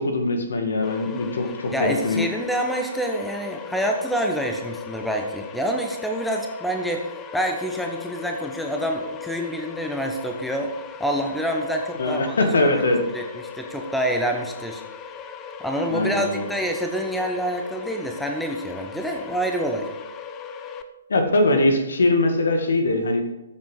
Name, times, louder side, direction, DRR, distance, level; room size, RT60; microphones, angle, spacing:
voice 1, 0.0-2.2 12.0-13.0 15.9-16.5 21.1-23.2, left 2 dB, 65° left, 6 dB, 1.9 m, -21 dB
sound 1, 0.8-20.8, left 6 dB, 20° left, 0.7 m, -38 dB
voice 2, 1.7-7.0 7.3-10.7 11.0-12.3 13.1-13.2 13.6-14.8 15.6-19.9, equal, ahead, 2 dB, 1.1 m, -27 dB
13.0 x 7.3 x 4.9 m, 0.96 s
figure-of-eight pair, 125°, 0 cm